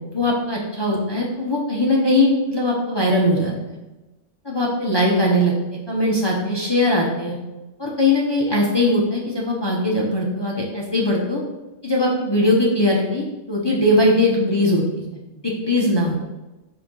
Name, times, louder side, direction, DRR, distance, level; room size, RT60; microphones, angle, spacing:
voice 1, 0.1-3.8 4.4-5.5 5.9-7.3 7.8-11.4 11.8-14.8 15.4-16.1, left 1 dB, 25° left, -3 dB, 0.5 m, -20 dB
5.5 x 3.5 x 5.4 m, 1.1 s
omnidirectional pair, 1.9 m